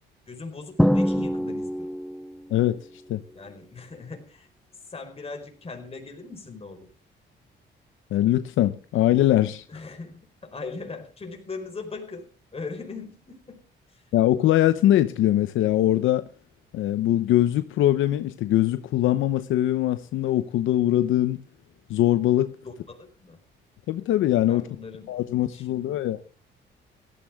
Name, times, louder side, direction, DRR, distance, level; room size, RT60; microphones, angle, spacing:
voice 1, 0.3-1.9 3.3-4.5 4.9-6.9 9.7-13.6 13.9-14.0 22.6-23.4 24.5-25.2 25.5-25.9, left 4 dB, 30° left, 4.5 m, -39 dB
Drum, 0.8-2.5, equal, ahead, 0.6 m, -24 dB
voice 2, 2.5-2.8 3.1-3.2 8.1-9.6 14.1-16.2 16.7-21.4 21.9-22.6 23.9-24.7 25.1-26.2, left 13 dB, 80° left, 0.8 m, -22 dB
17.0 x 13.5 x 3.5 m
cardioid pair, 90°, 20 cm